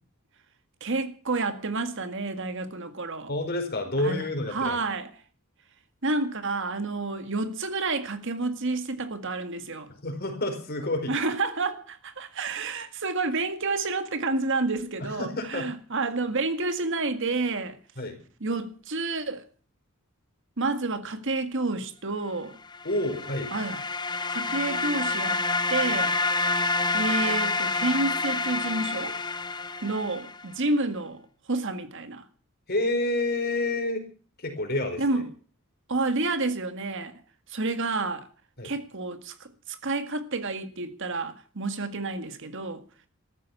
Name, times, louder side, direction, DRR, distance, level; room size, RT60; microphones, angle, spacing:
voice 1, 0.8-3.3 4.0-4.2 4.5-5.1 6.0-9.9 11.1-17.8 18.4-19.5 20.6-22.6 23.5-23.8 24.3-25.4 25.7-26.2 26.9-29.2 29.8-31.2 31.5-32.2 35.0-35.3 35.9-37.1 37.5-38.3 38.6-42.8, right 3 dB, 60° right, 1.9 m, -29 dB
voice 2, 3.3-4.8 10.0-11.1 15.0-15.7 18.0-18.1 22.8-23.5 32.7-34.1 34.4-35.2 38.6-38.7, left 2 dB, 50° left, 4.6 m, -29 dB
sound 1, 22.7-30.5, left 3 dB, 20° left, 0.8 m, -28 dB
14.0 x 13.5 x 7.1 m
head